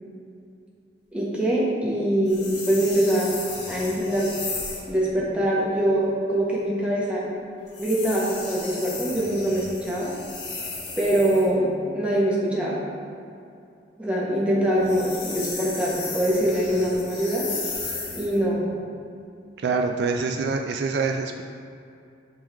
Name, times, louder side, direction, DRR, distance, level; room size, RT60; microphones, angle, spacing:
voice 1, 1.1-3.3 3.7-4.3 4.9-7.3 7.8-10.1 11.0-12.7 14.0-17.4 18.1-18.7, right 1 dB, 5° right, -6 dB, 1.2 m, -23 dB
sound 1, 2.3-4.9 7.7-11.5 14.7-18.4, left 3 dB, 65° left, 1.5 m, -35 dB
voice 2, 19.6-21.4, right 4 dB, 60° right, 3 dB, 0.3 m, -25 dB
10.5 x 3.7 x 3.4 m, 2.6 s
head